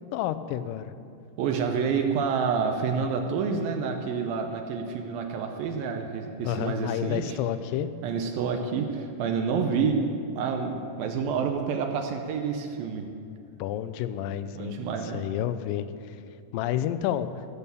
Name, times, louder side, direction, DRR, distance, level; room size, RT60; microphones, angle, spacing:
voice 1, 0.1-0.9 6.4-7.9 13.6-14.8 15.1-16.2 16.5-17.3, left 11 dB, 80° left, 12 dB, 2.1 m, -30 dB
voice 2, 1.4-7.4 8.0-10.0 10.4-13.1 14.5-15.2, right 5 dB, 80° right, 4 dB, 2.6 m, -28 dB
17.5 x 7.0 x 6.9 m, 2.5 s
omnidirectional pair, 4.2 m